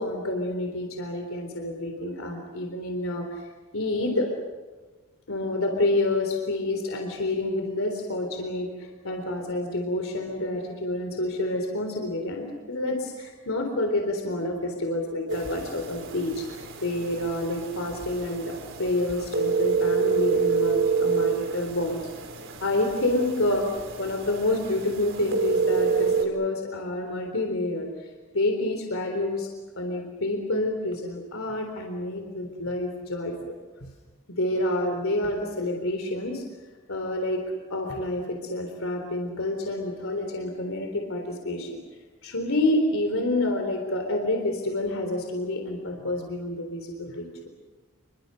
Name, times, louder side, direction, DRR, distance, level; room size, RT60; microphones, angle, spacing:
voice 1, 0.0-3.5 3.7-4.4 5.3-22.0 22.6-27.9 28.3-33.6 34.3-36.4 36.9-37.4 37.7-41.8 42.2-47.3, left 1 dB, 70° left, 4 dB, 3.8 m, -28 dB
sound 1, 15.3-26.2, right 5 dB, 60° right, 4.3 m, -28 dB
29.0 x 23.5 x 6.6 m, 1.3 s
head